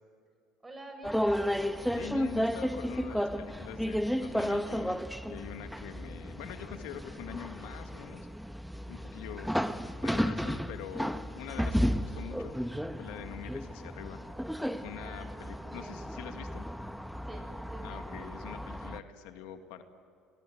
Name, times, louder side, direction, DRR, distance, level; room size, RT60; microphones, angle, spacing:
voice 1, 0.6-1.4 14.9-16.0 17.3-18.0, right 2 dB, 20° right, 5 dB, 7.7 m, -49 dB
sound 1, 1.0-19.0, equal, ahead, 1.2 m, -33 dB
voice 2, 1.9-5.0 5.3-8.3 8.9-9.5 10.0-14.2 14.8-16.6 17.8-19.8, left 10 dB, 75° left, 7 dB, 1.9 m, -44 dB
29.0 x 21.0 x 9.2 m, 2.4 s
supercardioid pair, 80°, 0 cm